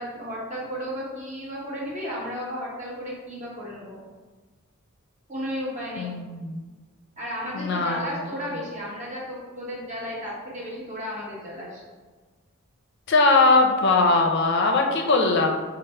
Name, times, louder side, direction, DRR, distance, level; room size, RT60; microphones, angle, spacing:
voice 1, 0.0-4.0 5.3-6.2 7.2-11.8, equal, 35° right, -5 dB, 1.2 m, -34 dB
voice 2, 6.0-6.7 7.5-8.1 13.1-15.5, left 3 dB, 55° left, 2 dB, 0.5 m, -20 dB
5.0 x 2.0 x 4.3 m, 1.3 s
head